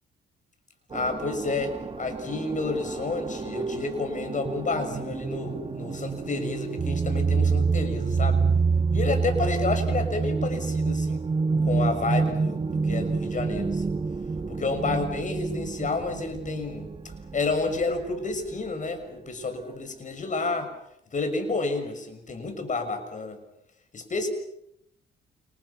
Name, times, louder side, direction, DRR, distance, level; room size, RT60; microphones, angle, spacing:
voice 1, 0.9-8.4 8.9-11.2 11.6-13.9 14.5-16.9 17.3-20.7 21.1-23.4 23.9-24.3, left 3 dB, 40° left, 7 dB, 6.6 m, -30 dB
sound 1, 0.9-18.1, right 4 dB, 25° right, 1.4 m, -28 dB
29.5 x 27.5 x 5.9 m, 0.75 s
cardioid pair, 90°, 20 cm